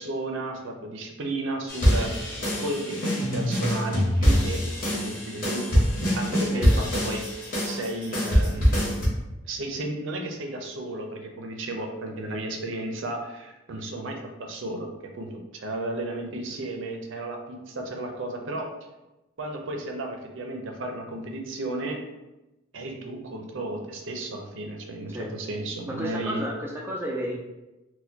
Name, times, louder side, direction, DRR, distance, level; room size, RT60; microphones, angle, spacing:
voice 1, 0.0-2.2 2.6-4.6 4.9-7.2 7.7-9.0 9.4-18.7 19.4-22.0 22.7-26.4, right 2 dB, 65° right, 2 dB, 0.5 m, -33 dB
sound 1, 1.7-9.1, equal, 45° left, 1.1 m, -24 dB
voice 2, 6.5-6.9 25.1-25.3 25.9-27.4, equal, 10° right, -2 dB, 0.3 m, -32 dB
4.2 x 2.2 x 2.7 m, 1.0 s
head